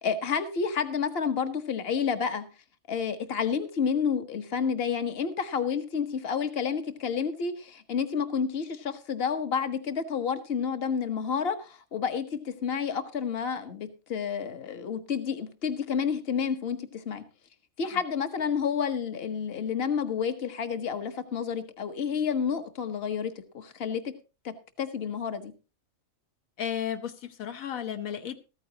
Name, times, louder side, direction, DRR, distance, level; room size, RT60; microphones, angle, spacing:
voice 1, 0.0-2.5 2.9-17.2 17.8-24.1 24.4-25.5, left 6 dB, 50° left, 9 dB, 1.3 m, -30 dB
voice 2, 26.6-28.4, left 9 dB, 90° left, 8 dB, 1.4 m, -34 dB
14.5 x 14.0 x 2.9 m, 0.30 s
omnidirectional pair, 1.4 m